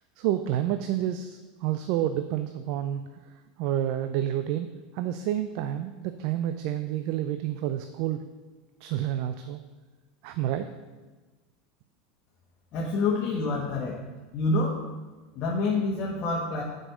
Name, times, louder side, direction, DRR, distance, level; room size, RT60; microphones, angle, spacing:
voice 1, 0.2-3.0 3.6-4.7 4.9-8.2 8.8-9.6 10.2-10.7, right 11 dB, 60° right, 9 dB, 0.4 m, -29 dB
voice 2, 12.7-14.0 14.3-14.8 15.3-16.6, left 3 dB, 45° left, -3 dB, 1.5 m, -27 dB
7.6 x 5.2 x 6.1 m, 1.3 s
hypercardioid pair, 100°, 0 cm